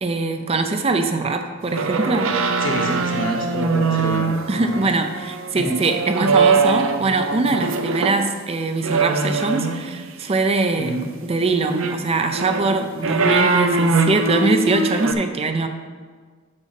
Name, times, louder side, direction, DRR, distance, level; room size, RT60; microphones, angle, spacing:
voice 1, 0.0-2.3 4.5-10.9 11.2-15.7, right 3 dB, 30° right, 7 dB, 0.5 m, -22 dB
sound 1, 1.7-8.2 8.8-10.0 11.6-15.1, right 4 dB, 75° right, 0.6 m, -22 dB
voice 2, 2.6-4.9 5.5-5.8 10.7-11.1, equal, 65° left, 1 dB, 1.6 m, -27 dB
6.4 x 6.2 x 5.8 m, 1.5 s
head